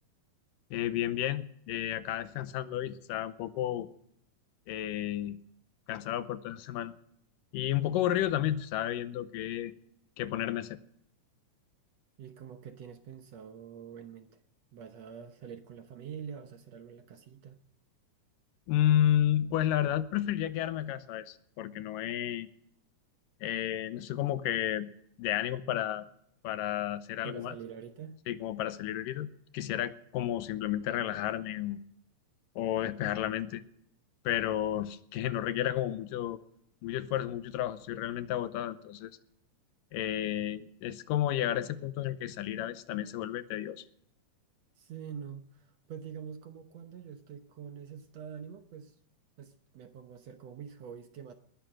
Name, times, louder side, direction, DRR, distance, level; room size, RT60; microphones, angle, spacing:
voice 1, 0.7-3.9 4.7-5.4 5.9-6.9 7.5-9.7 10.2-10.8 18.7-22.5 23.4-24.9 25.2-26.1 26.4-27.6 28.3-29.3 29.5-31.8 32.6-33.6 34.3-36.4 36.8-39.1 39.9-43.8, left 12 dB, 80° left, 14 dB, 2.4 m, -31 dB
voice 2, 12.2-14.4 14.7-17.6 27.2-28.2 44.8-49.0 49.4-51.3, right 7 dB, 65° right, 8 dB, 1.8 m, -45 dB
20.0 x 11.0 x 6.3 m, 0.70 s
omnidirectional pair, 3.9 m